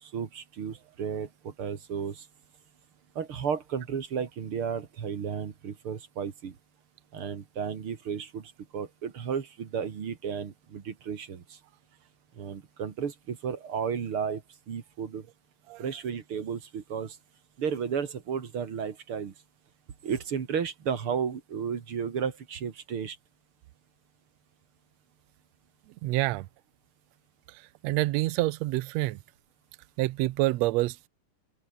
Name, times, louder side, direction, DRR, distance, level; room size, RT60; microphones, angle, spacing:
voice 1, 0.0-2.3 3.2-6.6 7.1-11.6 12.4-14.4 14.7-15.3 15.8-17.2 17.6-19.3 20.0-23.2, right 7 dB, 50° right, 2.6 m, -33 dB
voice 2, 26.0-26.5 27.8-29.2 30.0-31.1, right 18 dB, 75° right, 1.7 m, -27 dB
open air
omnidirectional pair, 3.5 m